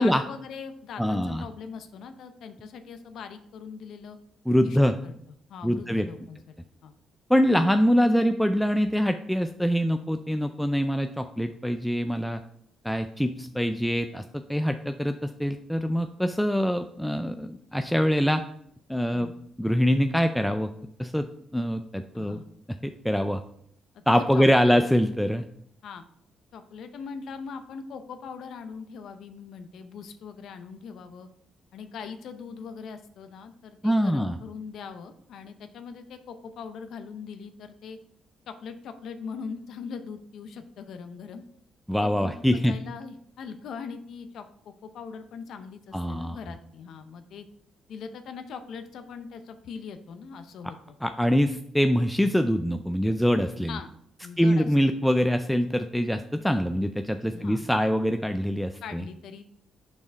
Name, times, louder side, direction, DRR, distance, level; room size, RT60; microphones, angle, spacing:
voice 1, 0.0-4.2 4.6-5.1 5.5-6.5 6.8-6.9 19.1-19.3 22.1-22.5 23.9-24.8 25.8-26.0 26.5-31.3 31.7-38.0 38.5-41.4 42.0-47.5 47.9-51.0 53.7-53.9 54.2-54.9 57.3-57.6 58.8-59.5, left 6 dB, 75° left, 8 dB, 0.6 m, -41 dB
voice 2, 1.0-1.5 4.5-5.0 5.6-6.1 7.3-12.4 12.8-18.4 18.9-19.3 19.6-20.7 21.0-21.3 21.5-22.4 22.8-23.4 24.1-25.5 33.8-34.4 41.9-42.8 45.9-46.4 51.0-53.8 54.4-59.0, equal, ahead, 7 dB, 0.3 m, -24 dB
5.9 x 4.4 x 4.4 m, 0.70 s
cardioid pair, 90°, 0 cm